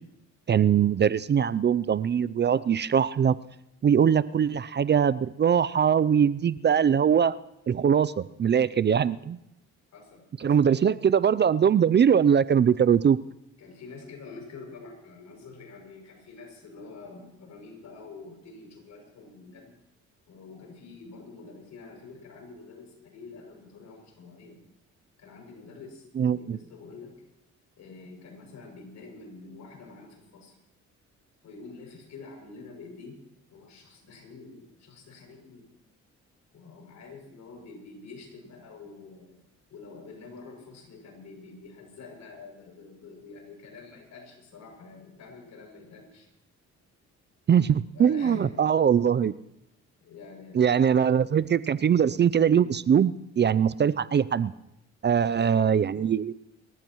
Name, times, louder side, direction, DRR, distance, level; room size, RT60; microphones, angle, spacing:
voice 1, 0.5-3.4 3.8-7.3 7.7-9.4 10.4-13.2 26.2-26.6 47.5-49.3 50.5-54.5 55.0-56.3, right 8 dB, 35° right, 17 dB, 0.5 m, -22 dB
voice 2, 9.9-10.5 13.6-19.7 20.3-24.6 25.2-27.2 27.8-30.6 31.4-33.2 33.5-35.7 36.5-39.4 39.7-46.3 47.9-48.6 50.0-50.9 55.2-55.7, left 4 dB, 70° left, 1 dB, 6.8 m, -47 dB
30.0 x 14.5 x 3.1 m, 0.85 s
cardioid pair, 90°, 30 cm